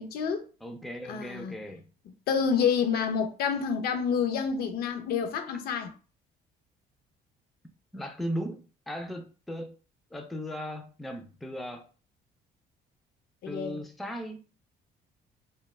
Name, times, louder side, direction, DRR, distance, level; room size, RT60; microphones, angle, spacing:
voice 1, 0.0-0.5 1.1-1.6 2.3-5.9 13.4-13.8, left 6 dB, 65° left, 0.5 m, -28 dB
voice 2, 0.6-1.8 7.9-9.7 10.1-11.9 13.4-14.4, equal, ahead, 0.3 m, -37 dB
2.2 x 2.0 x 3.1 m
cardioid pair, 110°, 17 cm